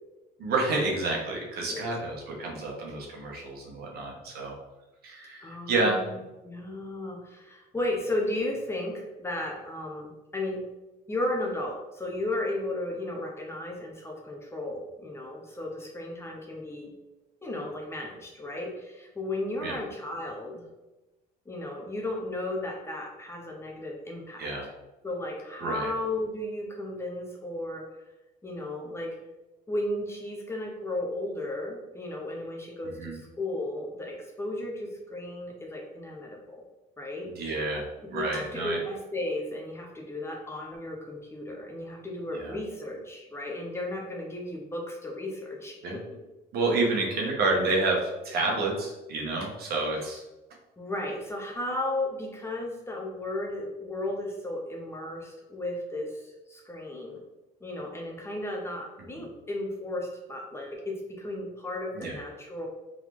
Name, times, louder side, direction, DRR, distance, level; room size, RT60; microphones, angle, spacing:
voice 1, 0.4-4.5 5.0-6.0 19.6-19.8 24.4-24.7 25.6-25.9 33.0-33.2 37.3-37.8 38.1-38.8 42.3-42.5 45.8-46.0 46.5-50.2 59.2-59.3 61.9-62.2, right 2 dB, 70° right, 0 dB, 1.1 m, -29 dB
voice 2, 5.4-10.6 11.1-16.9 17.4-20.6 21.5-24.5 25.0-27.8 28.4-29.1 29.7-36.6 37.0-37.3 38.1-46.0 50.8-57.2 57.6-62.7, left 1 dB, 15° left, -1 dB, 0.9 m, -34 dB
3.8 x 3.3 x 3.1 m, 1.0 s
cardioid pair, 110°, 17 cm